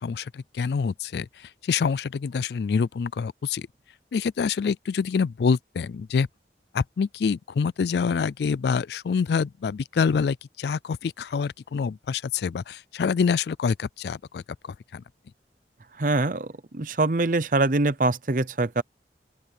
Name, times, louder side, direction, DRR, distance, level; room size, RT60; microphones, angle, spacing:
voice 1, 0.0-3.7 4.1-6.3 6.7-15.0, left 5 dB, 70° left, 0.3 m, -26 dB
voice 2, 16.0-18.8, right 2 dB, 50° right, 0.7 m, -24 dB
open air
head